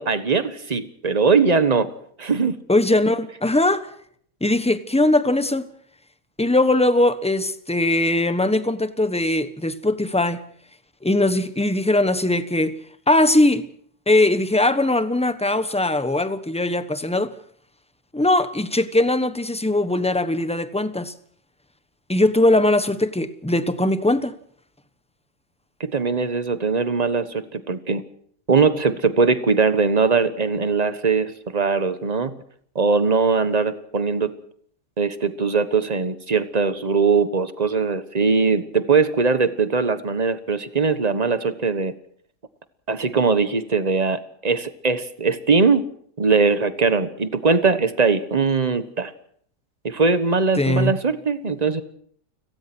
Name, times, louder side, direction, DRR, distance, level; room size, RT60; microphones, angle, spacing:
voice 1, 0.0-1.9 2.2-2.6 25.8-28.0 28.5-32.4 32.7-34.3 35.0-41.9 42.9-45.8 46.2-49.1 49.8-51.8, right 4 dB, 25° right, 1.2 m, -21 dB
voice 2, 2.7-3.9 4.4-5.7 6.4-10.4 11.0-12.7 13.1-13.7 14.1-17.3 18.1-21.1 22.1-24.3 50.6-50.9, left 2 dB, 5° left, 0.9 m, -20 dB
30.0 x 17.5 x 6.2 m
omnidirectional pair, 1.7 m